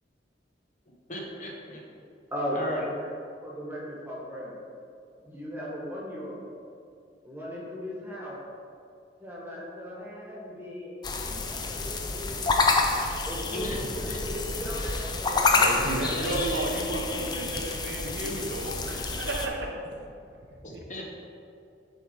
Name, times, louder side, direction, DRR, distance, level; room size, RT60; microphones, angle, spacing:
voice 1, 1.1-1.8 2.5-2.8 13.5-13.8 14.0-14.2 16.1-17.5 20.6-21.1, equal, 45° left, -2 dB, 1.1 m, -36 dB
voice 2, 2.3-3.0 3.4-4.6 5.2-6.5 7.2-8.4 9.2-12.7 13.2-15.5, equal, 10° right, -5 dB, 1.5 m, -37 dB
sound 1, 11.0-19.5, left 3 dB, 25° left, 0.5 m, -28 dB
voice 3, 15.5-19.8 20.7-20.8, right 2 dB, 75° right, 1 dB, 0.9 m, -33 dB
8.0 x 3.6 x 4.8 m, 2.5 s
head